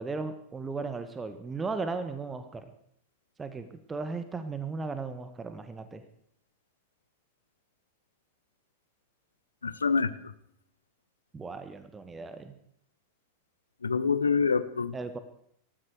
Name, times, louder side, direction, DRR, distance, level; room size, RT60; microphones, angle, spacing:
voice 1, 0.0-2.7 3.4-6.0 11.3-12.5 14.9-15.2, right 4 dB, 15° right, 10 dB, 1.5 m, -36 dB
voice 2, 9.6-10.1 13.8-14.9, left 5 dB, 75° left, 14 dB, 1.0 m, -26 dB
19.5 x 14.5 x 4.9 m, 0.67 s
figure-of-eight pair, 90°, 0 cm